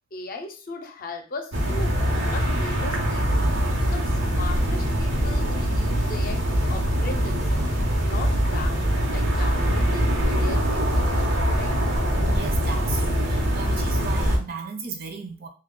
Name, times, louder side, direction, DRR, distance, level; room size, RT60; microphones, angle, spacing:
voice 1, 0.1-2.0 2.3-3.5 3.8-7.6 8.0-11.1 11.5-11.8, left 3 dB, 50° left, 0.6 m, -38 dB
sound 1, 1.5-14.4, equal, 85° right, 0.9 m, -23 dB
voice 2, 12.3-15.5, right 5 dB, 55° right, 0.6 m, -35 dB
2.9 x 2.3 x 3.8 m
head